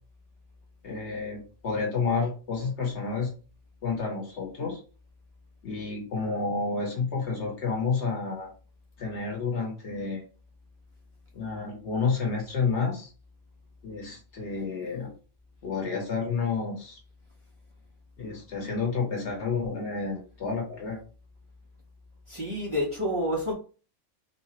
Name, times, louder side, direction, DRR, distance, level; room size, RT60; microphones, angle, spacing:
voice 1, 0.8-3.3 3.8-4.8 5.6-8.5 9.0-10.2 11.3-13.1 13.8-15.1 15.6-17.0 18.2-21.0, left 4 dB, 65° left, 1.3 m, -30 dB
voice 2, 22.3-23.5, equal, 30° right, 0.8 m, -28 dB
4.1 x 2.2 x 3.0 m
omnidirectional pair, 1.3 m